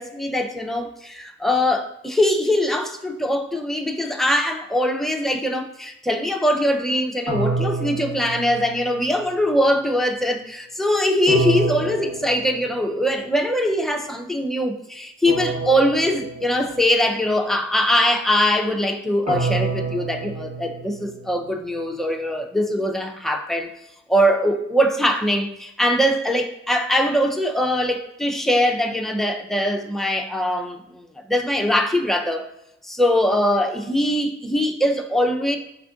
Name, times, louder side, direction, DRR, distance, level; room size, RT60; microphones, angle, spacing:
voice 1, 0.0-23.7 24.1-32.5 32.8-35.6, equal, ahead, 3 dB, 0.5 m, -22 dB
sound 1, 7.3-9.3 11.3-13.1 15.3-17.1 19.3-21.5, right 3 dB, 55° right, 1.3 m, -28 dB
4.4 x 2.4 x 3.6 m, 0.79 s
cardioid pair, 45°, 31 cm